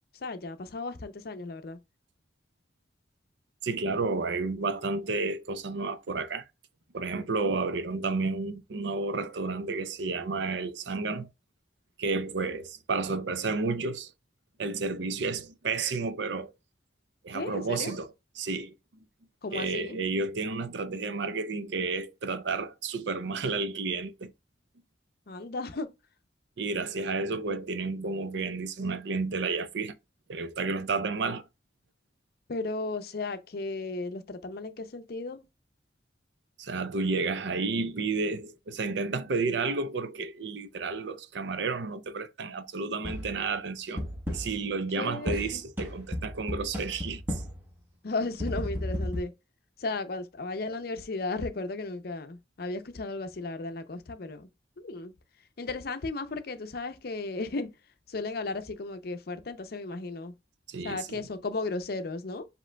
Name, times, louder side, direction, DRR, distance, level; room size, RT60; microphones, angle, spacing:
voice 1, 0.1-1.8 17.3-18.0 19.4-20.0 25.3-25.9 32.5-35.4 45.0-45.6 48.0-49.3 49.8-54.5 54.8-55.1 55.6-57.7 58.1-60.3 60.8-62.5, left 3 dB, 55° left, 0.5 m, -35 dB
voice 2, 3.6-6.4 6.9-11.3 12.0-14.1 14.6-16.5 17.2-18.1 18.4-18.7 19.5-24.3 26.6-29.9 30.3-31.5 36.6-44.0 44.3-47.4 60.7-61.3, right 3 dB, 70° right, 0.5 m, -31 dB
sound 1, 43.0-43.5 44.0-44.7 45.3-47.7 48.4-49.2, equal, 10° right, 0.9 m, -34 dB
7.4 x 2.9 x 2.2 m
head